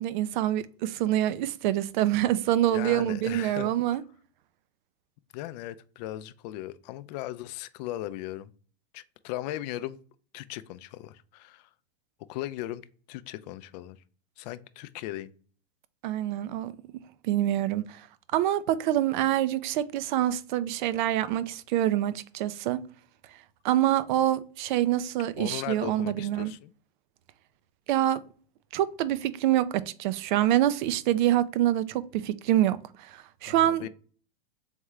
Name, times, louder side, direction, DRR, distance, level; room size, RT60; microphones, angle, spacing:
voice 1, 0.0-4.0 16.0-16.7 17.2-18.0 18.3-22.8 23.6-26.5 27.9-28.2 28.7-33.9, right 13 dB, 55° right, 0.5 m, -26 dB
voice 2, 2.7-4.0 5.3-8.5 8.9-10.0 10.3-11.7 12.3-12.8 13.1-14.0 14.4-15.3 25.4-26.7 33.6-33.9, left 14 dB, 50° left, 0.4 m, -37 dB
3.5 x 3.5 x 3.2 m
hypercardioid pair, 110°, 29 cm